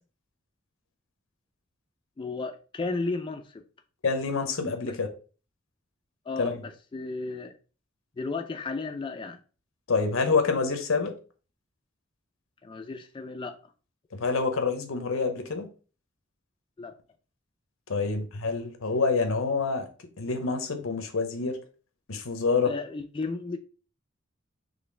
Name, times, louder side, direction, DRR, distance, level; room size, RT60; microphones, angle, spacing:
voice 1, 2.2-3.6 4.8-5.0 6.3-7.5 8.2-9.4 12.6-13.6 16.8-16.9 22.6-23.6, left 3 dB, 25° left, 0.3 m, -34 dB
voice 2, 4.0-5.1 6.4-6.6 9.9-11.1 14.1-15.7 17.9-19.9 20.2-21.6 22.1-22.7, left 4 dB, 85° left, 0.8 m, -27 dB
4.1 x 3.2 x 3.3 m
head